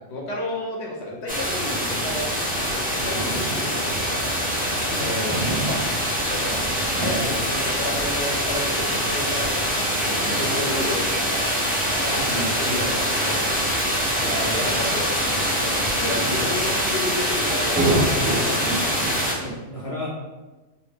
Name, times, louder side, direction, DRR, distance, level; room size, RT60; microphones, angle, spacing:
voice 1, 0.1-2.3 2.6-4.3 4.9-5.8 6.3-6.5 7.0-11.4 11.8-15.1 15.6-17.9 18.2-18.8, left 2 dB, 60° left, -2 dB, 1.0 m, -32 dB
sound 1, 1.3-19.3, equal, 15° right, 0.3 m, -24 dB
voice 2, 12.1-12.6 19.4-20.1, equal, 35° left, -6 dB, 0.6 m, -33 dB
3.3 x 2.7 x 2.9 m, 1.2 s
omnidirectional pair, 1.4 m